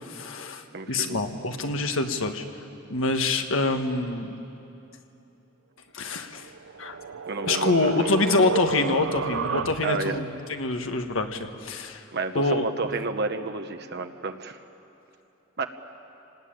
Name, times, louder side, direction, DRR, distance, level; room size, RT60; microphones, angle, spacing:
voice 1, 0.0-2.4 2.9-4.3 5.9-6.5 6.8-7.0 7.4-12.0 12.3-12.6, left 3 dB, 70° left, 6 dB, 1.5 m, -26 dB
voice 2, 0.7-1.2 7.3-8.1 9.8-10.2 12.1-14.6 15.6-15.7, right 4 dB, 55° right, 7 dB, 1.0 m, -30 dB
sound 1, 6.4-10.2, right 5 dB, 75° right, 0.6 m, -32 dB
27.0 x 19.5 x 8.9 m, 2.8 s
head